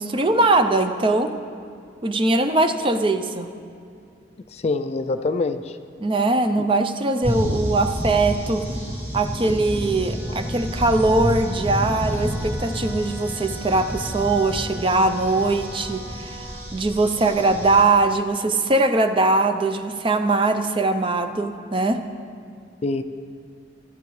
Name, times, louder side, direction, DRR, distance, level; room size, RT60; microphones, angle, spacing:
voice 1, 0.0-1.3 2.0-3.5 6.0-8.7 9.1-16.5 16.7-22.0, right 2 dB, 25° right, 8 dB, 0.5 m, -21 dB
voice 2, 4.5-5.8 22.8-23.0, left 3 dB, 35° left, 9 dB, 0.3 m, -25 dB
sound 1, 7.2-17.8, equal, 10° right, 2.1 m, -29 dB
Wind instrument woodwind instrument, 9.6-16.8, right 1 dB, 55° right, 2.7 m, -42 dB
17.0 x 12.0 x 3.2 m, 2.4 s
head